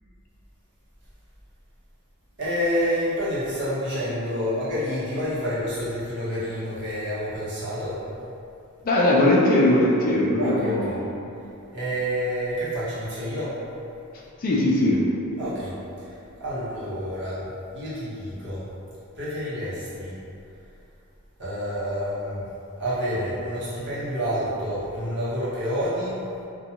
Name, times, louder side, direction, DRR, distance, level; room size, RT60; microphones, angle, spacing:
voice 1, 2.4-8.0 10.4-11.0 11.7-13.6 15.4-18.7 19.1-20.2 21.4-22.5 22.8-26.2, equal, 55° right, -11 dB, 0.9 m, -28 dB
voice 2, 8.8-10.9 14.4-15.0, left 1 dB, 40° left, -4 dB, 0.4 m, -20 dB
2.5 x 2.2 x 2.8 m, 2.7 s
head